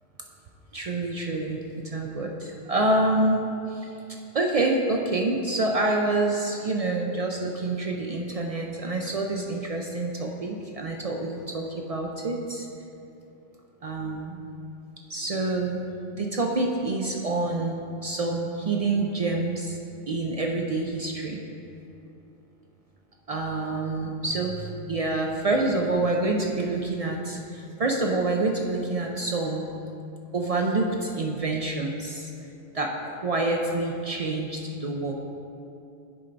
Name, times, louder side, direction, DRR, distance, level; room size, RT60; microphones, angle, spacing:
voice 1, 0.7-1.6 1.8-3.9 4.3-12.7 13.8-14.4 15.1-19.8 20.1-21.4 23.3-29.7 30.3-32.3 32.7-35.1, right 2 dB, 65° right, 1 dB, 0.3 m, -27 dB
10.5 x 4.4 x 3.9 m, 2.7 s
omnidirectional pair, 1.2 m